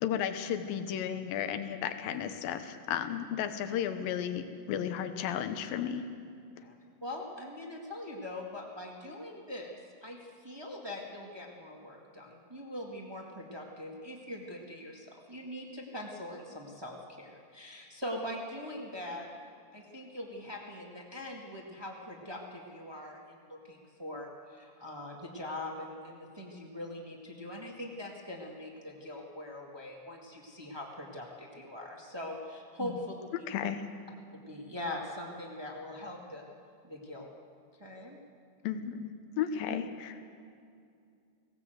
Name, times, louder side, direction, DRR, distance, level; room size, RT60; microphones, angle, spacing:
voice 1, 0.0-6.1 32.8-32.9 33.5-33.8 38.6-40.2, left 9 dB, 90° left, 9 dB, 2.7 m, -34 dB
voice 2, 7.0-9.7 10.0-19.3 19.7-33.5 34.5-36.4 36.8-37.3 37.8-38.2, left 1 dB, 30° right, -1 dB, 0.4 m, -42 dB
19.0 x 17.5 x 7.9 m, 2.4 s
omnidirectional pair, 4.0 m